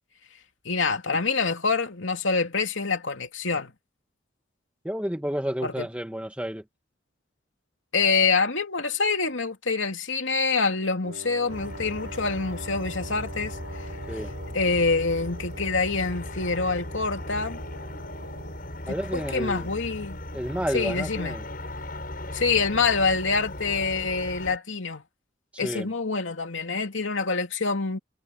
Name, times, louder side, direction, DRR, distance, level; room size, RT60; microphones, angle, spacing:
voice 1, 0.6-3.7 5.6-5.9 7.9-13.9 14.5-17.6 19.1-20.2 20.7-21.4 22.3-25.0 25.6-28.0, left 4 dB, 90° left, 2.8 m, -26 dB
voice 2, 4.8-6.6 14.1-14.3 18.9-19.7 20.3-21.4 25.6-25.9, equal, 5° right, 1.8 m, -30 dB
Wind instrument woodwind instrument, 11.0-18.6, right 2 dB, 85° right, 6.5 m, -44 dB
sound 1, 11.5-24.6, left 1 dB, 50° left, 6.7 m, -37 dB
head